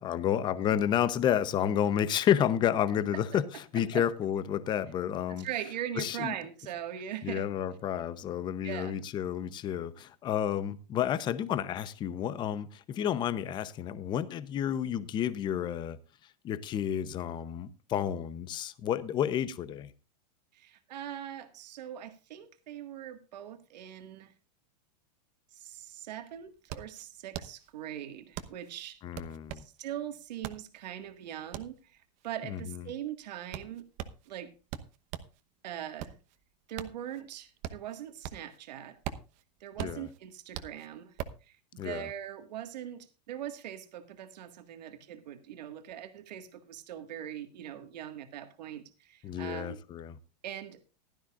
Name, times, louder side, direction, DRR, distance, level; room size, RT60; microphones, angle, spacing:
voice 1, 0.0-3.4 3.7-5.5 6.0-6.3 7.2-16.0 16.4-19.9 29.0-29.6 32.5-32.6 39.8-40.1 41.8-42.0 49.2-50.2, left 10 dB, 20° left, 0.7 m, -30 dB
voice 2, 3.7-4.0 5.3-7.5 8.6-9.0 20.5-24.3 25.5-29.0 29.5-33.8 34.3-34.5 35.6-36.2 36.7-39.0 39.6-49.8 50.4-50.8, right 11 dB, 80° right, 1.8 m, -41 dB
sound 1, 25.7-25.8 26.1-35.4 35.8-38.6 38.9-41.5, right 11 dB, 35° right, 1.0 m, -42 dB
15.5 x 12.5 x 2.4 m
supercardioid pair, 155°, 21 cm